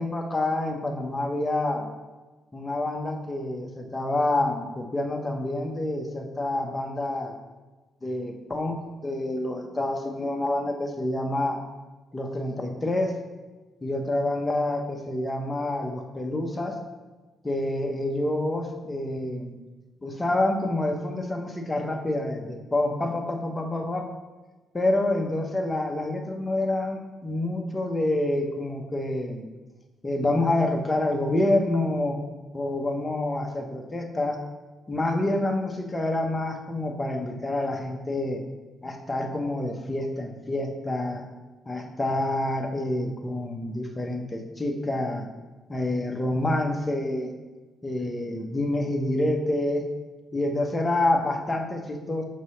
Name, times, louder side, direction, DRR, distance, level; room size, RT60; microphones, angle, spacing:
voice 1, 0.0-1.9 2.5-7.3 8.0-11.6 12.1-13.1 13.8-16.8 17.4-19.5 20.0-24.1 24.7-29.5 30.0-32.2 32.5-34.4 34.9-38.4 38.8-41.2 41.7-45.3 45.7-47.3 47.8-49.8 50.3-52.2, left 1 dB, 20° left, 3 dB, 1.0 m, -27 dB
6.6 x 3.9 x 6.3 m, 1.2 s
cardioid pair, 90°, 0 cm